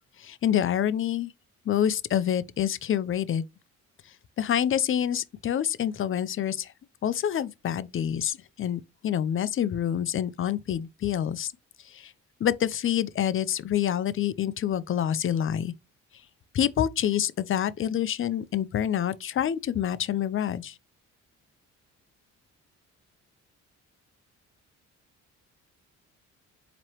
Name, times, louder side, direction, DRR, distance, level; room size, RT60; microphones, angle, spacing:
voice 1, 0.2-1.3 1.7-3.4 4.4-6.7 7.0-11.5 11.8-12.1 12.4-15.7 16.5-20.8, left 10 dB, 45° left, 0.5 m, -27 dB
4.5 x 3.0 x 2.9 m
cardioid pair, 90°, 30 cm